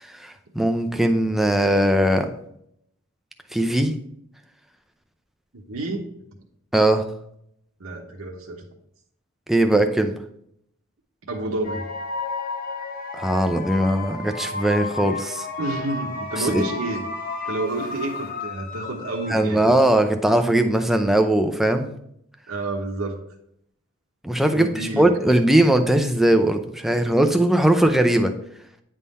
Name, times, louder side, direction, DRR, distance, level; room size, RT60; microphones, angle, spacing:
voice 1, 0.1-2.3 3.5-3.9 6.7-7.0 9.5-10.2 13.1-15.5 16.4-16.6 19.3-21.9 24.2-24.7 24.9-28.3, right 1 dB, ahead, 6 dB, 0.5 m, -19 dB
voice 2, 5.7-6.1 7.8-8.6 11.3-11.8 15.6-17.0 17.4-19.8 22.5-23.2 24.5-25.1, right 2 dB, 75° right, 0 dB, 1.0 m, -29 dB
sound 1, 11.6-19.7, left 3 dB, 40° left, 0.8 m, -32 dB
9.7 x 3.7 x 4.1 m, 0.73 s
head